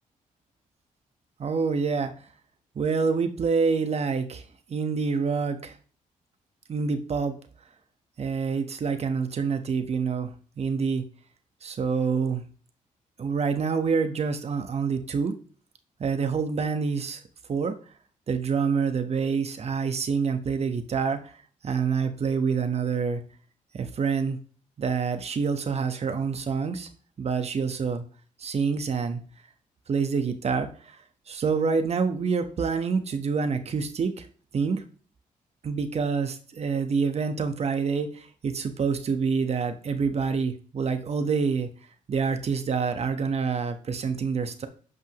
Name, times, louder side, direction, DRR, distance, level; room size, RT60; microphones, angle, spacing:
voice 1, 1.4-2.1 2.7-5.8 6.7-7.3 8.2-11.0 11.6-12.4 13.2-15.4 16.0-17.2 17.5-17.7 18.3-21.3 21.6-23.2 23.7-24.4 24.8-26.9 27.2-28.0 28.4-29.2 29.9-31.0 31.3-34.3 34.5-34.8 35.6-41.7 42.1-44.7, right 5 dB, 50° right, 8 dB, 1.2 m, -27 dB
11.0 x 5.5 x 3.1 m, 0.42 s
cardioid pair, 90°, 14 cm